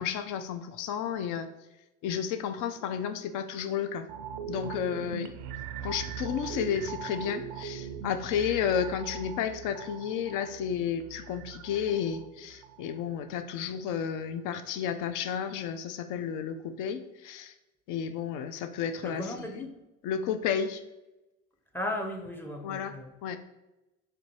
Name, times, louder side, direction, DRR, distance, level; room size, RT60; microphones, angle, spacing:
voice 1, 0.0-1.5 2.0-4.0 4.5-5.3 5.8-17.5 17.9-19.3 20.0-20.8 22.6-22.9 23.2-23.4, left 8 dB, 50° left, 9 dB, 0.5 m, -32 dB
sound 1, 4.1-13.4 13.8-13.9, right 8 dB, 45° right, 0.4 m, -41 dB
voice 2, 19.0-19.7 21.7-23.1, left 1 dB, 5° left, 3 dB, 0.6 m, -36 dB
3.3 x 2.6 x 4.4 m, 1.0 s
hypercardioid pair, 65°, 41 cm